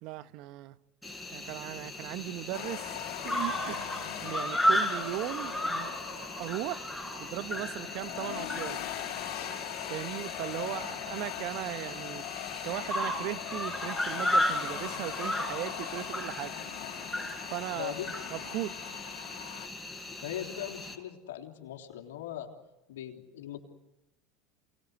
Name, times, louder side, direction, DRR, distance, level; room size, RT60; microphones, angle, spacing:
voice 1, 0.0-0.8 1.3-3.0 3.2-3.9 4.2-6.9 7.2-8.9 9.9-12.2 12.6-16.5 17.5-17.9 18.3-18.7, right 16 dB, 60° right, 1.0 m, -37 dB
Cricket, 1.0-21.0, left 1 dB, 5° left, 5.6 m, -35 dB
sound 1, 2.5-19.7, left 13 dB, 65° left, 4.3 m, -41 dB
voice 2, 17.7-18.1 20.2-22.5 22.9-23.6, left 11 dB, 80° left, 3.3 m, -40 dB
28.0 x 20.0 x 8.3 m
hypercardioid pair, 90°, 0 cm